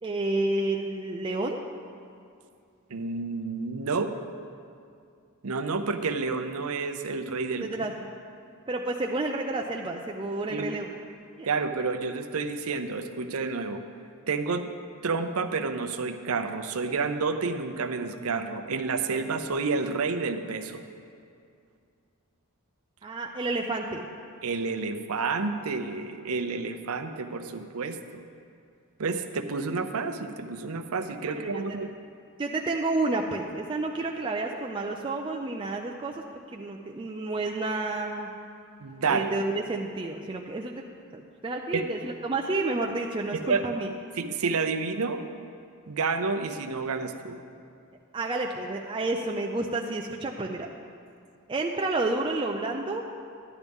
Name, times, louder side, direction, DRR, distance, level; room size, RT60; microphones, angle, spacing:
voice 1, 0.0-1.6 7.6-8.1 8.7-10.9 11.4-11.5 23.0-24.1 31.3-31.6 32.4-36.2 36.5-38.3 39.1-40.8 41.1-43.9 48.1-50.7 51.5-53.0, right 2 dB, 20° right, 0 dB, 0.4 m, -30 dB
voice 2, 2.9-4.1 5.4-7.7 10.5-10.7 11.4-13.8 14.3-14.7 15.0-20.8 24.4-28.2 29.0-31.9 38.8-39.3 41.7-41.8 43.3-43.6 44.2-45.2 45.9-47.4, right 4 dB, 70° right, 7 dB, 0.6 m, -29 dB
12.0 x 10.5 x 3.6 m, 2.4 s
head